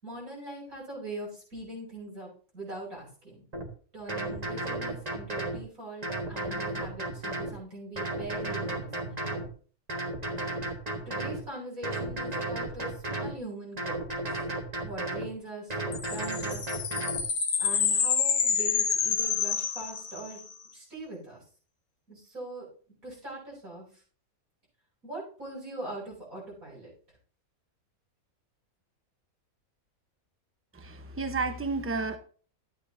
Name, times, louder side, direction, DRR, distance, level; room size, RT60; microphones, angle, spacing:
voice 1, 0.0-3.4 3.9-9.5 11.1-14.0 14.8-16.8 17.6-20.4 20.7-21.4 22.1-22.7 23.0-23.8 25.0-26.9, right 2 dB, 70° right, -4 dB, 6.4 m, -41 dB
sound 1, 3.5-3.7 4.1-5.6 6.0-7.5 8.0-9.5 9.9-11.4 11.8-13.3 13.8-15.3 15.7-17.2, right 2 dB, 30° right, 1.4 m, -33 dB
sound 2, 15.9-20.5, left 7 dB, 50° left, 1.0 m, -28 dB
voice 2, 30.8-32.2, right 3 dB, 10° right, 8 dB, 0.7 m, -31 dB
13.0 x 9.1 x 2.7 m, 0.42 s
omnidirectional pair, 1.5 m